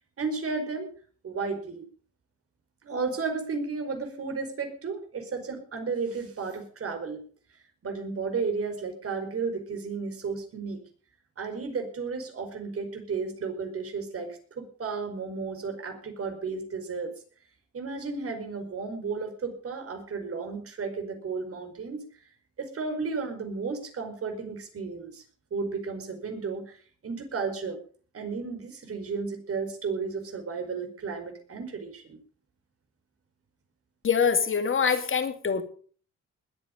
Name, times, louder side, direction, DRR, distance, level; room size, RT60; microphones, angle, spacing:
voice 1, 0.2-0.9 1.2-1.9 2.8-7.3 7.8-10.8 11.4-17.1 17.7-22.1 22.6-25.2 25.5-27.8 28.1-32.2, right 4 dB, 50° right, 6 dB, 4.8 m, -33 dB
voice 2, 34.0-35.6, left 6 dB, 40° left, 8 dB, 2.7 m, -24 dB
21.0 x 9.0 x 5.2 m, 0.44 s
cardioid pair, 90°, 30 cm